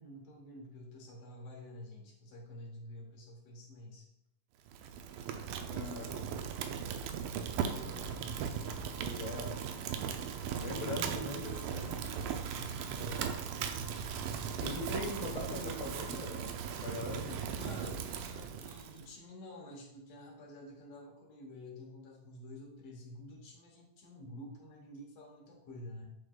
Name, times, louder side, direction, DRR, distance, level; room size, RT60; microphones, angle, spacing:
voice 1, 0.0-4.1 7.7-8.7 12.5-13.8 17.5-26.0, left 1 dB, 65° left, -1 dB, 1.7 m, -50 dB
Fire, 4.7-19.1, right 7 dB, 80° right, 2.1 m, -38 dB
voice 2, 5.7-6.2 9.0-9.6 10.6-12.1 14.5-17.7, left 2 dB, 85° left, -1 dB, 1.0 m, -41 dB
sound 1, 7.6-17.3, left 1 dB, 50° left, 2.8 m, -57 dB
8.6 x 4.8 x 2.3 m, 0.84 s
omnidirectional pair, 4.0 m